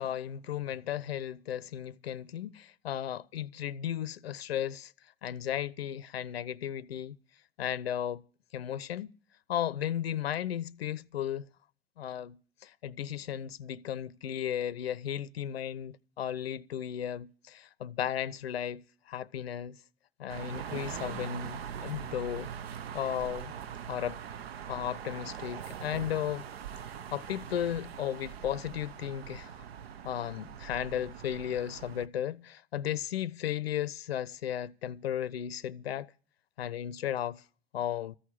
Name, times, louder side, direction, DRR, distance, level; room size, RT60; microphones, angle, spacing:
voice 1, 0.0-4.9 5.2-7.2 7.6-8.2 8.5-9.1 9.5-11.4 12.0-19.8 20.2-22.5 22.9-23.5 23.9-24.2 24.7-26.4 27.1-29.5 30.0-36.1 36.6-37.4 37.7-38.2, left 10 dB, 90° left, 0.5 m, -35 dB
sound 1, 20.3-32.1, right 8 dB, 85° right, 0.7 m, -42 dB
14.0 x 6.3 x 9.8 m
hypercardioid pair, 75°, 30 cm